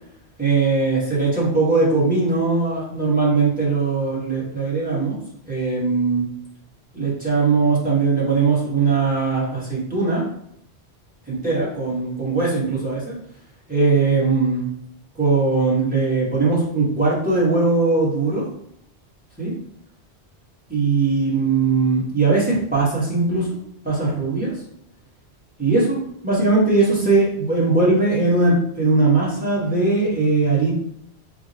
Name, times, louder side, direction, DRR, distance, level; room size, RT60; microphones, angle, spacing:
voice 1, 0.4-5.2 5.5-6.2 6.9-10.2 11.3-13.1 13.7-14.7 15.2-18.4 19.4-19.5 20.7-23.5 23.8-24.5 25.6-30.7, right 3 dB, 10° right, -7 dB, 1.5 m, -20 dB
3.5 x 2.5 x 4.3 m, 0.72 s
omnidirectional pair, 1.1 m